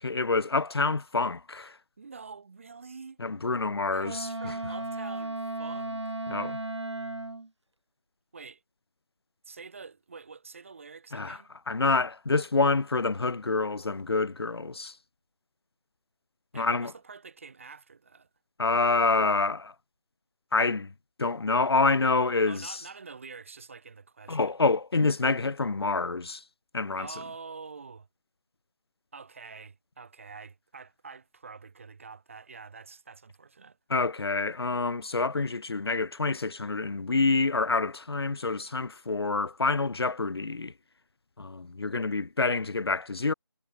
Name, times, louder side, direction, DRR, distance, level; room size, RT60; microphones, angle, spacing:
voice 1, 0.0-1.8 3.2-4.2 4.4-4.5 6.3-6.6 11.1-11.4 11.7-14.9 16.5-16.9 18.6-19.7 20.5-20.9 21.2-22.8 24.3-26.4 26.7-27.1 33.9-40.7 41.4-43.3, left 3 dB, 65° left, 0.6 m, -27 dB
voice 2, 2.0-3.2 3.9-6.1 8.3-8.6 9.4-11.5 16.5-18.3 22.5-24.5 27.0-28.1 29.1-33.8, right 5 dB, 30° right, 2.7 m, -46 dB
Wind instrument woodwind instrument, 4.0-7.5, right 2 dB, 85° right, 1.2 m, -35 dB
figure-of-eight pair, 165°, 14 cm